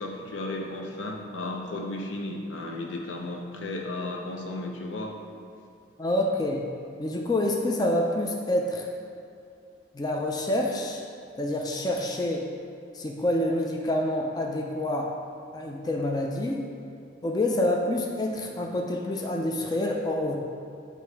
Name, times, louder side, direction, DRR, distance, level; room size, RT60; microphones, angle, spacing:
voice 1, 0.0-5.1, left 2 dB, 90° left, 1 dB, 0.7 m, -34 dB
voice 2, 6.0-6.6 7.0-8.9 9.9-11.0 11.4-12.5 12.9-15.1 15.5-16.6 17.2-20.4, left 1 dB, 20° left, 0 dB, 0.4 m, -27 dB
6.6 x 3.1 x 4.5 m, 2.4 s
head